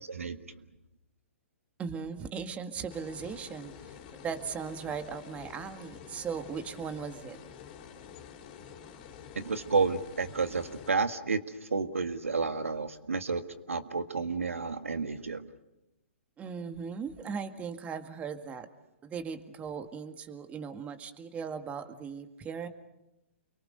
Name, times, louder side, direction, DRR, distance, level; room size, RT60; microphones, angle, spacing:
voice 1, 0.1-0.4 9.4-13.4 13.7-15.5, right 4 dB, 90° right, 9 dB, 1.8 m, -31 dB
voice 2, 1.8-7.4 16.4-18.7 19.0-22.7, right 6 dB, 20° right, 8 dB, 1.9 m, -38 dB
sound 1, 2.9-10.9, left 7 dB, 40° left, 3.9 m, -48 dB
29.5 x 23.0 x 6.7 m, 0.93 s
hypercardioid pair, 125°, 7 cm